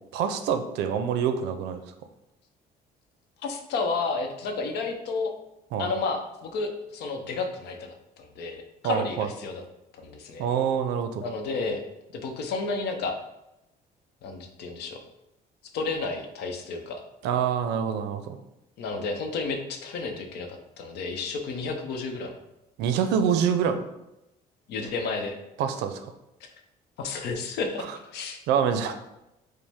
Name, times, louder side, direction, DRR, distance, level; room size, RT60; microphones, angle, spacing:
voice 1, 0.1-1.8 5.7-5.9 8.8-9.3 10.4-11.2 17.2-18.4 22.8-23.8 25.6-26.1 28.5-28.9, right 7 dB, 85° right, 8 dB, 0.5 m, -26 dB
voice 2, 3.4-5.3 5.8-9.6 9.9-10.5 11.2-11.8 12.1-13.2 14.2-15.0 15.7-17.0 18.8-22.3 24.7-25.3 26.4-26.5 27.0-28.4, left 4 dB, 75° left, 4 dB, 0.7 m, -31 dB
5.1 x 2.1 x 3.4 m, 0.89 s
cardioid pair, 110°, 17 cm